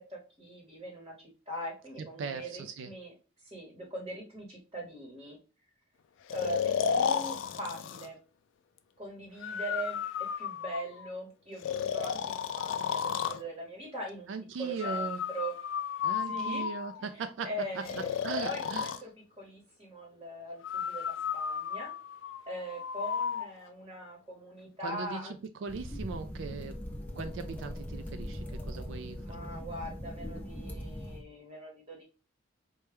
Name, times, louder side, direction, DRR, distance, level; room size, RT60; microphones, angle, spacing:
voice 1, 0.1-3.1 3.4-5.4 6.3-8.2 9.0-10.0 10.4-14.3 14.6-15.5 16.2-16.7 17.0-19.1 19.4-21.9 22.5-25.3 29.1-32.0, right 1 dB, 25° right, 0.9 m, -41 dB
voice 2, 2.0-2.9 14.3-15.2 16.0-17.8 18.2-18.9 24.8-26.7 27.2-29.6, right 5 dB, 70° right, 0.3 m, -39 dB
Breathing, 6.3-8.1 9.4-11.1 11.6-13.4 14.8-17.1 17.8-19.0 20.6-23.5, left 7 dB, 70° left, 0.3 m, -33 dB
sound 1, 25.7-31.2, equal, 10° left, 0.6 m, -40 dB
4.5 x 2.1 x 3.3 m
head